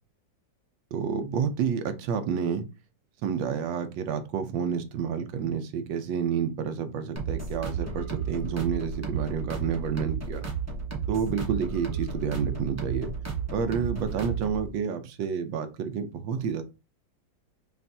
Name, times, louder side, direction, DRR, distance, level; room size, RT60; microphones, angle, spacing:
voice 1, 0.9-2.7 3.2-10.5 11.1-13.1 13.5-16.6, right 7 dB, 85° right, 9 dB, 1.4 m, -29 dB
sound 1, 7.2-14.7, right 6 dB, 20° right, 0.4 m, -33 dB
5.5 x 2.4 x 2.7 m, 0.29 s
omnidirectional pair, 2.0 m